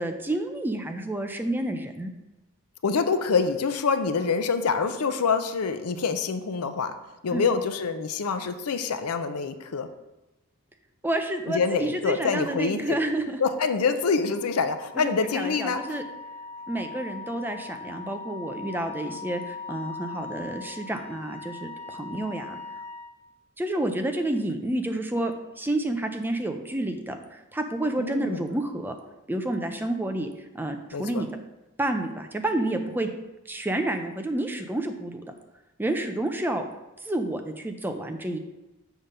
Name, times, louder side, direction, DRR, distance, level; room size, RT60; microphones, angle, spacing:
voice 1, 0.0-2.1 7.3-7.4 11.0-13.4 14.9-16.0 16.7-22.6 23.6-25.3 25.6-28.9 29.3-30.3 30.5-31.3 31.8-33.1 33.5-35.2 35.8-36.7 37.0-38.4, right 1 dB, 10° right, 6 dB, 0.4 m, -29 dB
voice 2, 2.8-6.9 7.2-9.9 11.5-13.0 13.4-15.8 28.0-28.4 30.9-31.2, left 5 dB, 80° left, 9 dB, 0.6 m, -26 dB
Wind instrument woodwind instrument, 13.7-23.1, left 4 dB, 45° left, 1.8 m, -41 dB
7.1 x 3.7 x 5.4 m, 1.0 s
head